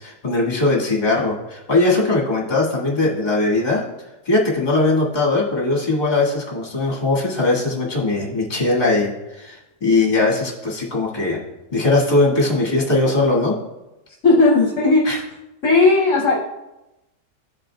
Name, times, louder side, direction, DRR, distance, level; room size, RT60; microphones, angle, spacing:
voice 1, 0.0-3.8 4.3-11.4 11.7-13.5 15.1-15.2, left 2 dB, 30° left, -3 dB, 1.7 m, -20 dB
voice 2, 14.2-15.1 15.6-16.4, left 3 dB, 60° left, -2 dB, 1.1 m, -15 dB
14.5 x 5.1 x 2.2 m, 0.98 s
omnidirectional pair, 1.6 m